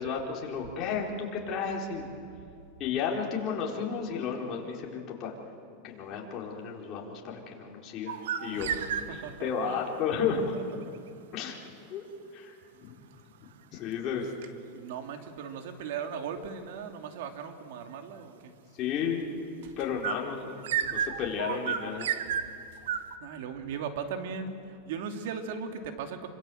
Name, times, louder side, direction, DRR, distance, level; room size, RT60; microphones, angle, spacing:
voice 1, 0.0-2.1 2.8-5.3 5.8-8.7 9.1-10.4 11.3-11.6 11.9-12.0 12.3-12.5 12.8-12.9 13.4-14.3 18.7-19.2 19.8-22.1, left 6 dB, 35° left, -1 dB, 4.3 m, -33 dB
sound 1, 8.1-9.4 20.0-23.2, right 8 dB, 85° right, 1.4 m, -32 dB
voice 2, 8.5-9.9 10.5-11.2 14.7-18.5 19.6-19.7 20.8-21.0 23.2-26.3, right 6 dB, 65° right, 5 dB, 2.6 m, -38 dB
27.5 x 25.5 x 7.9 m, 2.5 s
supercardioid pair, 155°, 0 cm